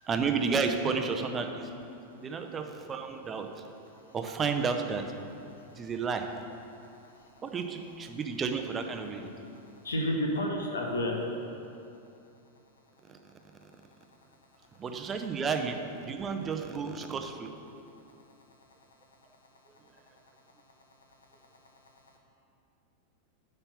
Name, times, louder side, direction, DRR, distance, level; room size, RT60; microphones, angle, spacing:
voice 1, 0.1-1.7 2.2-3.6 4.1-5.0 5.8-6.3 7.4-9.2 14.8-17.5, right 5 dB, 20° right, 5 dB, 0.6 m, -31 dB
voice 2, 9.8-11.1, left 1 dB, 70° left, 1 dB, 1.1 m, -31 dB
9.8 x 3.4 x 5.7 m, 2.6 s
figure-of-eight pair, 90°, 0 cm